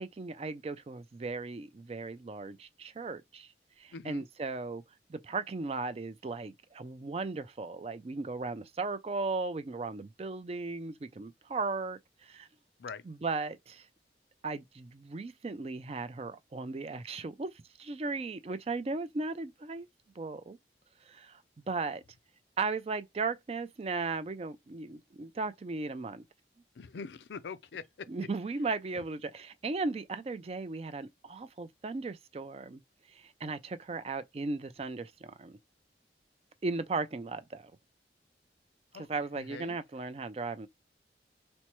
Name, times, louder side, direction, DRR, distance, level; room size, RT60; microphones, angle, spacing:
voice 1, 0.0-3.5 3.8-4.8 5.1-12.5 13.0-13.9 14.4-19.9 20.2-20.6 21.1-21.4 21.7-22.0 22.6-26.2 28.1-32.8 33.1-35.6 36.6-37.7 38.9-40.7, right 3 dB, 35° right, 0.4 m, -36 dB
voice 2, 3.9-4.3 12.8-13.0 26.8-28.1 38.9-39.1 39.5-39.8, left 5 dB, 80° left, 0.4 m, -43 dB
4.3 x 2.1 x 3.0 m
head